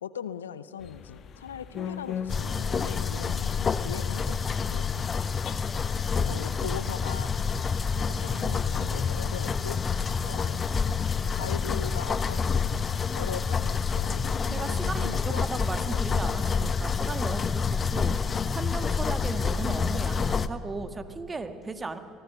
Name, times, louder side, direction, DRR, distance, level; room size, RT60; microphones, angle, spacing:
voice 1, 0.0-4.9 6.2-7.3 8.1-9.8 10.2-10.6 11.3-12.8 13.1-16.1, left 8 dB, 85° left, 16 dB, 0.6 m, -40 dB
sound 1, 0.8-16.5, left 8 dB, 50° left, 1.3 m, -45 dB
sound 2, 2.3-20.5, left 5 dB, 35° left, 0.8 m, -28 dB
voice 2, 14.5-22.0, right 3 dB, 25° right, 9 dB, 1.7 m, -36 dB
24.5 x 18.5 x 6.8 m, 2.7 s
hypercardioid pair, 65°, 0 cm